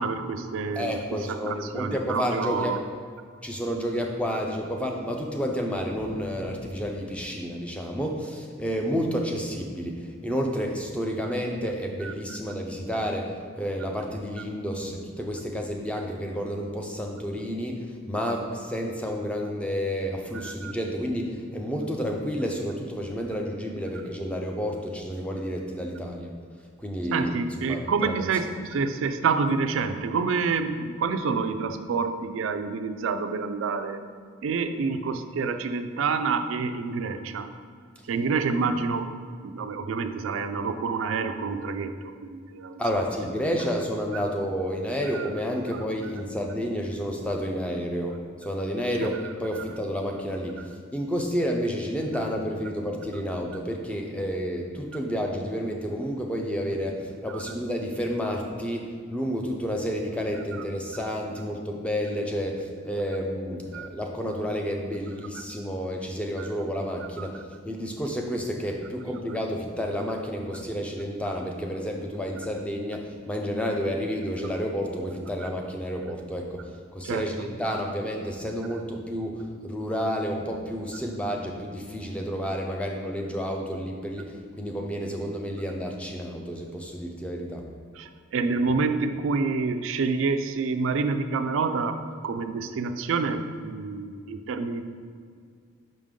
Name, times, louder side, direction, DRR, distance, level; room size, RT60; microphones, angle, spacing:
voice 1, 0.0-2.8 12.0-12.1 20.3-20.7 27.1-34.0 34.4-37.5 38.1-39.1 39.4-42.8 45.1-45.3 45.7-45.8 49.0-49.1 49.5-49.6 57.3-57.4 63.7-63.9 66.4-66.5 67.2-67.3 75.4-75.5 77.0-77.5 88.0-92.0 92.2-94.8, right 4 dB, 70° right, 8 dB, 0.4 m, -28 dB
voice 2, 0.7-2.7 3.4-26.3 26.8-27.4 27.7-28.1 42.8-87.7, equal, 5° left, 1 dB, 0.5 m, -30 dB
5.6 x 5.1 x 3.7 m, 2.1 s
head